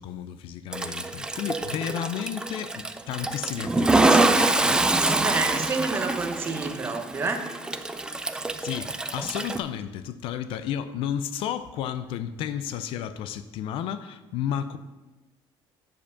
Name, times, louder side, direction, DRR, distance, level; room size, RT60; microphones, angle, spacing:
voice 1, 0.0-5.4 8.6-14.8, left 9 dB, 65° left, 12 dB, 0.5 m, -33 dB
Toilet flush, 0.7-9.6, right 2 dB, 10° right, 0.3 m, -25 dB
voice 2, 5.1-7.4, right 4 dB, 25° right, 5 dB, 0.8 m, -29 dB
6.7 x 5.2 x 7.0 m, 1.1 s
cardioid pair, 165°, 10 cm